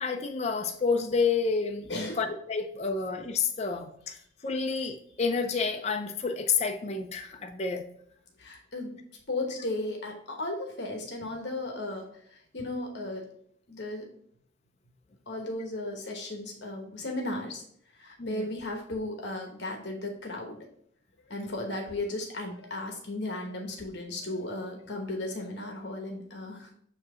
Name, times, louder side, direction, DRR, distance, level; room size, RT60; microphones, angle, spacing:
voice 1, 0.0-4.2 4.4-7.8 18.2-18.4, left 5 dB, 35° left, 4 dB, 0.5 m, -29 dB
voice 2, 8.4-9.0 9.3-13.2 13.7-14.0 15.3-17.6 17.9-20.6 21.3-26.7, left 2 dB, 60° left, 2 dB, 1.1 m, -35 dB
7.2 x 2.8 x 4.8 m, 0.66 s
head